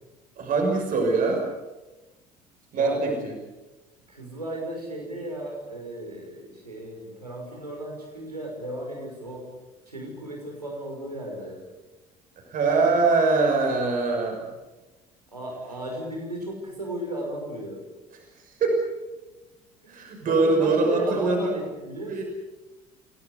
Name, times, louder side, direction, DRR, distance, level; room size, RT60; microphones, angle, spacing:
voice 1, 0.4-1.5 2.7-3.3 12.5-14.5 18.4-18.9 19.9-21.5 22.1-22.2, right 3 dB, 45° right, 1 dB, 6.2 m, -23 dB
voice 2, 2.7-3.2 4.1-9.4 9.9-11.6 15.3-17.8 19.8-22.2, right 1 dB, 90° right, 0 dB, 6.0 m, -35 dB
28.0 x 18.5 x 8.2 m, 1.1 s
figure-of-eight pair, 60°, 20 cm